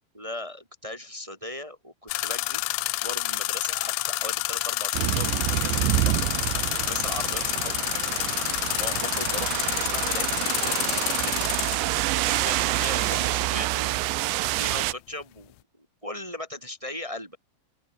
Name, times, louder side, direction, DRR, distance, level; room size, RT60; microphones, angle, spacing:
voice 1, 0.1-2.6 3.0-7.8 8.5-11.5 12.1-17.4, left 1 dB, 10° right, 1.6 m, -38 dB
sound 1, 2.1-13.5, left 21 dB, 80° left, 3.0 m, -29 dB
sound 2, 4.9-14.9, right 19 dB, 85° right, 3.0 m, -27 dB
open air
omnidirectional pair, 5.3 m